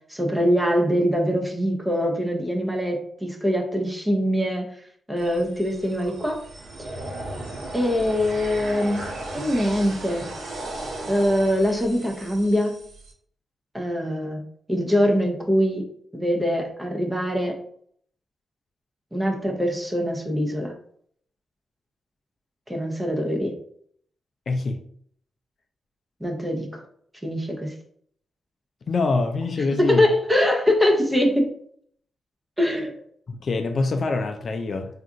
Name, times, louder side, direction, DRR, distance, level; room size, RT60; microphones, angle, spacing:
voice 1, 0.1-4.7 5.1-6.4 7.7-9.1 9.3-10.3 11.1-12.8 13.7-14.4 14.7-15.8 16.1-17.6 19.1-20.7 22.7-23.5 26.2-26.8 27.2-27.7 29.8-31.5 32.6-33.0, equal, 10° right, 2 dB, 0.6 m, -23 dB
sound 1, 5.2-13.1, right 2 dB, 80° right, 0.8 m, -36 dB
voice 2, 24.5-24.8 28.9-30.1 33.3-34.9, left 3 dB, 50° left, 6 dB, 0.3 m, -25 dB
2.4 x 2.3 x 3.8 m, 0.63 s
cardioid pair, 110°, 0 cm